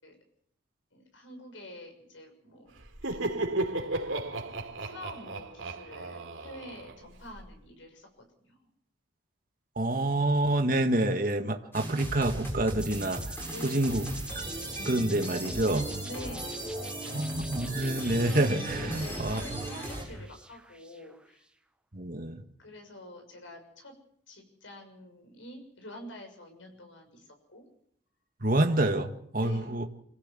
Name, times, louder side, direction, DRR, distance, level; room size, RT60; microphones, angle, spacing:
voice 1, 0.9-2.7 3.1-3.3 3.7-4.3 4.8-8.7 13.5-13.9 16.1-17.3 19.0-21.5 22.6-23.9 24.3-27.6 29.4-29.7, left 1 dB, 80° left, 5 dB, 6.7 m, -47 dB
Laughter, 2.8-7.5, right 2 dB, 85° right, 3.0 m, -34 dB
voice 2, 9.8-13.4 13.6-14.1 14.4-14.6 14.9-15.9 17.1-19.6 21.9-22.4 28.4-29.8, right 1 dB, 45° right, 5 dB, 1.8 m, -27 dB
sound 1, 11.7-20.0, right 1 dB, 10° left, 7.5 m, -37 dB
sound 2, 12.8-21.3, right 2 dB, 5° right, 1.0 m, -45 dB
26.5 x 16.0 x 7.6 m, 0.69 s
head